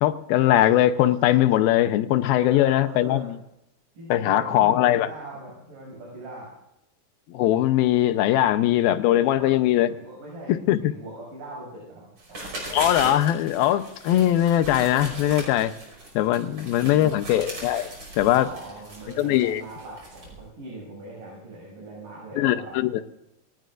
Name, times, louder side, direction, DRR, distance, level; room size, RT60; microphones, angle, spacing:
voice 1, 0.0-3.4 4.1-5.1 7.3-9.9 10.5-10.9 12.7-15.7 16.2-17.9 18.2-18.5 19.2-19.6 22.4-22.9, left 13 dB, 80° left, 11 dB, 2.6 m, -21 dB
voice 2, 2.2-3.3 3.9-6.5 9.1-12.1 16.3-17.2 18.2-22.8, right 2 dB, 65° right, -4 dB, 8.5 m, -41 dB
sound 1, 12.2-20.4, right 1 dB, 35° right, 6.4 m, -38 dB
27.0 x 18.5 x 2.6 m, 0.84 s
omnidirectional pair, 4.3 m